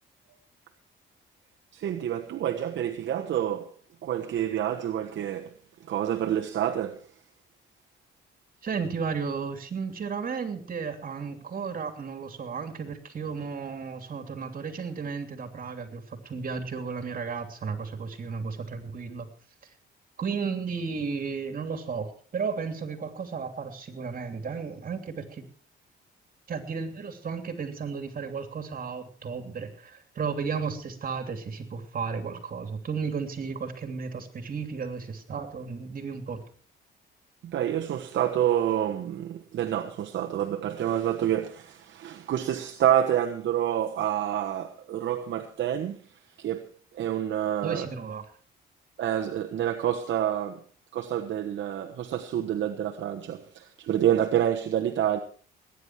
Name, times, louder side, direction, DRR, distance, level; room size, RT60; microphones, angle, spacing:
voice 1, 1.7-3.7 4.0-5.5 5.9-7.0 37.4-46.0 46.4-46.6 46.9-47.9 49.0-50.6 50.9-55.2, right 10 dB, 70° right, 1.2 m, -28 dB
voice 2, 8.6-19.3 19.6-19.7 20.2-25.5 26.5-36.4 47.6-48.2, right 5 dB, 45° right, 3.0 m, -34 dB
19.5 x 10.0 x 4.7 m
cardioid pair, 90°, 20 cm